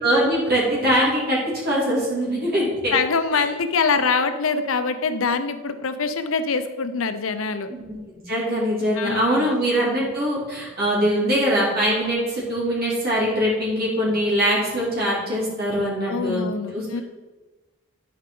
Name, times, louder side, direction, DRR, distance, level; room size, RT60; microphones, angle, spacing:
voice 1, 0.0-2.9 3.4-3.5 7.7-8.0 8.3-16.4 16.7-17.0, equal, 50° right, -5 dB, 2.5 m, -22 dB
voice 2, 2.9-7.7 8.9-9.5 16.1-17.0, left 5 dB, 80° left, 9 dB, 0.6 m, -24 dB
11.0 x 4.8 x 3.8 m, 1.2 s
head